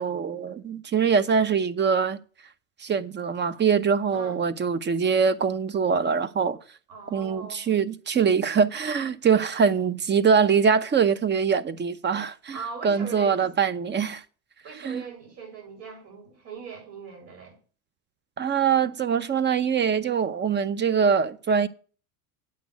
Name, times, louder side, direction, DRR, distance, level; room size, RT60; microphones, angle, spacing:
voice 1, 0.0-2.2 2.8-6.6 7.1-12.6 12.8-14.2 14.8-15.0 18.4-21.7, right 6 dB, 25° right, 0.7 m, -23 dB
voice 2, 6.9-7.7 12.5-13.5 14.6-17.6, right 5 dB, 65° right, 7.4 m, -40 dB
8.5 x 6.1 x 8.2 m
supercardioid pair, 105°, 45 cm